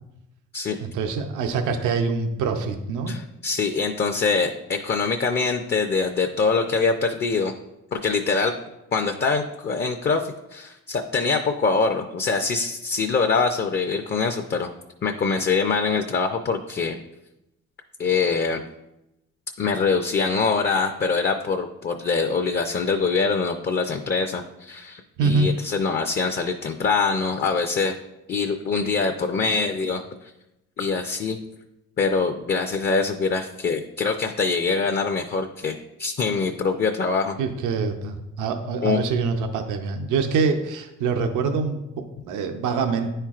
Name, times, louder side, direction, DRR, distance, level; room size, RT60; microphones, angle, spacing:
voice 1, 0.8-3.2 25.2-25.6 37.4-43.1, right 4 dB, 85° right, 5 dB, 0.6 m, -25 dB
voice 2, 3.1-7.5 7.9-8.6 8.9-14.7 15.0-17.0 18.0-18.6 19.6-28.0 28.3-30.0 30.8-31.4 32.0-37.4 38.8-39.0, left 4 dB, 35° left, 5 dB, 0.5 m, -24 dB
9.7 x 4.4 x 2.4 m, 0.93 s
cardioid pair, 90°, 30 cm